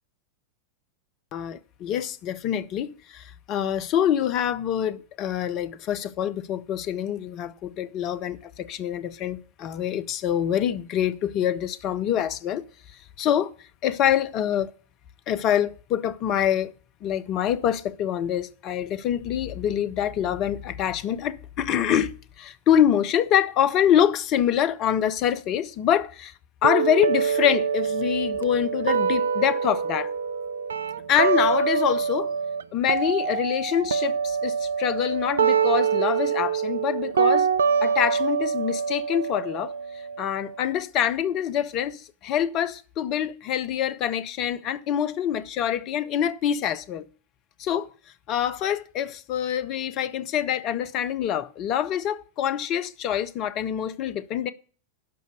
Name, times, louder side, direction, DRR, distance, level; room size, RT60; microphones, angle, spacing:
voice 1, 1.3-12.6 13.2-13.5 13.8-14.7 15.3-16.7 17.0-26.3 26.6-30.1 31.1-32.3 32.7-37.5 37.8-39.7 40.2-47.0 47.6-47.9 48.3-54.5, left 10 dB, 35° left, 0.6 m, -25 dB
sound 1, 26.6-32.6 32.9-40.7, right 6 dB, 70° right, 0.4 m, -25 dB
12.0 x 5.3 x 6.6 m
figure-of-eight pair, 90°, 0 cm